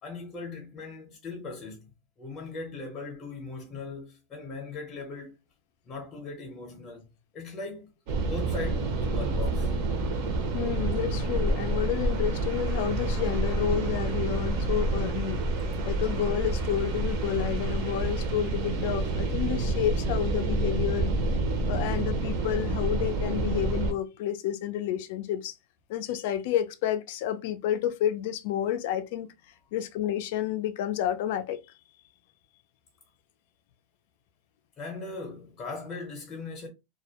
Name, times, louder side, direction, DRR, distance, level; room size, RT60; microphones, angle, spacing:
voice 1, 0.0-1.9 2.2-5.3 5.8-7.1 7.3-7.9 8.2-9.7 29.6-29.7 34.8-36.7, left 3 dB, 20° left, 0.7 m, -39 dB
sound 1, 8.1-23.9, right 2 dB, 50° right, 0.6 m, -28 dB
voice 2, 10.5-15.4 15.8-21.1 21.7-25.5 25.9-29.3 29.7-31.6, left 10 dB, 60° left, 0.3 m, -30 dB
2.2 x 2.0 x 2.8 m
supercardioid pair, 155°, 0 cm